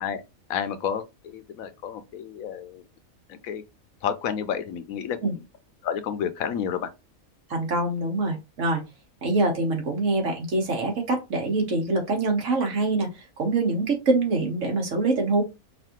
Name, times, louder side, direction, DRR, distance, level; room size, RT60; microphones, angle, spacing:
voice 1, 0.5-2.8 3.3-3.6 4.0-5.2 5.8-6.9, left 8 dB, 75° left, 1.1 m, -30 dB
voice 2, 7.5-8.8 9.2-15.4, right 2 dB, 60° right, 1.6 m, -24 dB
5.1 x 2.7 x 2.8 m
omnidirectional pair, 1.5 m